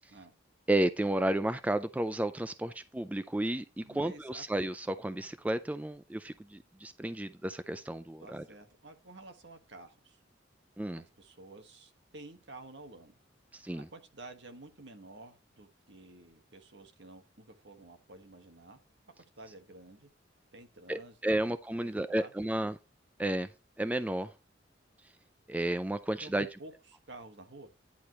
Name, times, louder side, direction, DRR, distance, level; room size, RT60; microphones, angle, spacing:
voice 1, 0.7-8.4 10.8-11.0 13.5-13.9 20.9-22.8 23.2-23.5 23.8-24.3 25.5-26.5, right 1 dB, 10° right, 0.3 m, -32 dB
voice 2, 3.8-4.4 8.2-10.2 11.0-13.2 13.7-18.8 19.4-20.1 20.5-21.2 21.4-22.5 26.2-27.7, right 2 dB, 65° right, 1.5 m, -51 dB
10.5 x 4.9 x 4.2 m
head